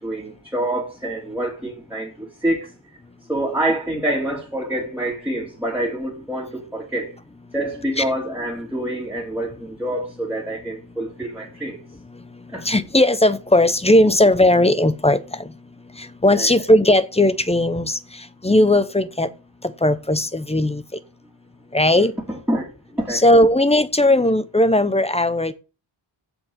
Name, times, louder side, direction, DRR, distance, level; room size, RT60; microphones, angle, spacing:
voice 1, 0.0-2.7 3.3-7.1 7.5-11.8 12.5-12.7 16.3-16.5 22.3-22.7 23.0-23.2, right 1 dB, 5° right, 2.8 m, -26 dB
voice 2, 12.6-15.4 16.0-19.3 19.8-20.8 21.7-22.1 23.1-25.5, left 1 dB, 10° left, 0.9 m, -17 dB
7.7 x 6.4 x 7.5 m
wide cardioid pair, 105°, 50 cm